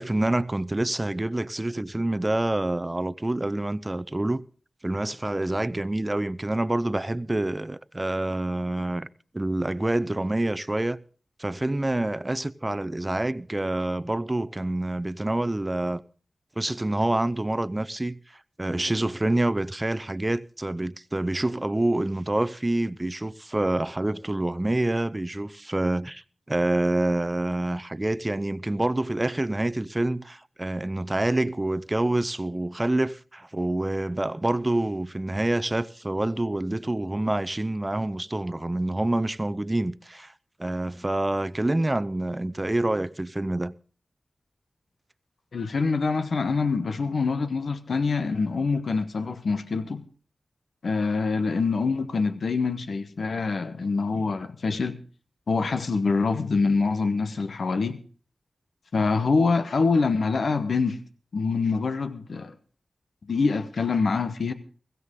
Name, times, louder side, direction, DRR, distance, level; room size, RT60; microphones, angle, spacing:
voice 1, 0.0-4.4 4.8-9.1 9.3-11.0 11.4-16.0 16.6-18.2 18.6-26.2 26.5-40.3 40.6-43.7, right 1 dB, 25° right, 0.6 m, -27 dB
voice 2, 45.5-50.0 50.8-55.0 55.5-58.0 58.9-61.0 61.3-62.5 63.2-64.5, left 4 dB, 80° left, 1.0 m, -25 dB
16.5 x 15.0 x 3.7 m
cardioid pair, 45°, 0 cm